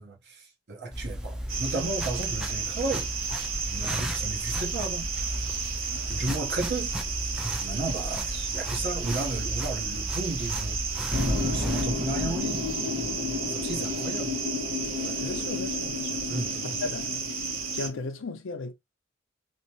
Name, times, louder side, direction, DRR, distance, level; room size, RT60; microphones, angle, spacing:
voice 1, 0.0-3.1 3.7-5.1 6.1-6.9 7.6-12.7 13.5-14.4 15.0-15.4 16.3-16.7, right 2 dB, 60° right, 1.0 m, -34 dB
sound 1, 0.9-11.8, equal, 5° right, 0.4 m, -35 dB
sound 2, 1.5-17.9, right 6 dB, 90° right, 0.7 m, -33 dB
sound 3, 11.1-18.1, left 4 dB, 30° right, 1.4 m, -32 dB
voice 2, 15.2-16.2 16.6-17.2 17.7-18.7, left 3 dB, 70° left, 0.5 m, -36 dB
3.1 x 2.0 x 2.9 m
head